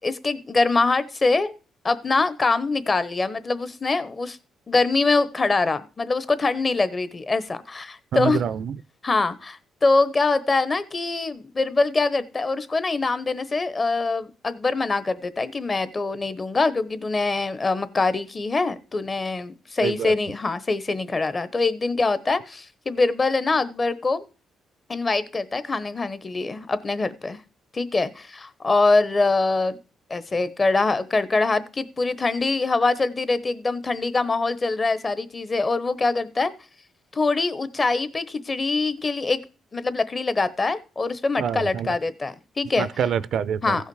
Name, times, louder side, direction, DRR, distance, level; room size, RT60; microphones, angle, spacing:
voice 1, 0.0-1.5 1.8-4.4 4.7-8.4 9.0-24.3 24.9-27.4 27.7-29.8 30.1-36.5 37.1-39.4 39.7-42.9 43.6-43.9, left 3 dB, 30° left, 0.9 m, -24 dB
voice 2, 8.1-8.8 19.8-20.1 41.4-41.9 42.8-43.8, right 8 dB, 65° right, 0.4 m, -26 dB
15.5 x 5.6 x 4.7 m
cardioid pair, 90°, 0 cm